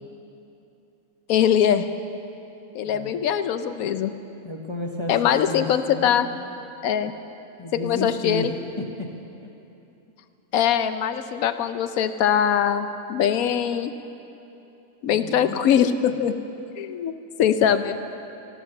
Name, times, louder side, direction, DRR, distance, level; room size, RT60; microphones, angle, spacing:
voice 1, 1.3-1.9 2.7-4.1 5.1-6.3 6.8-7.1 7.8-8.5 10.5-13.9 15.0-16.4 16.8-17.1 17.4-17.9, left 9 dB, 85° left, 10 dB, 1.1 m, -22 dB
voice 2, 2.8-3.2 4.4-6.3 7.6-9.1 15.1-15.6, left 2 dB, 25° left, 1 dB, 0.8 m, -32 dB
13.5 x 12.5 x 6.6 m, 2.8 s
omnidirectional pair, 1.4 m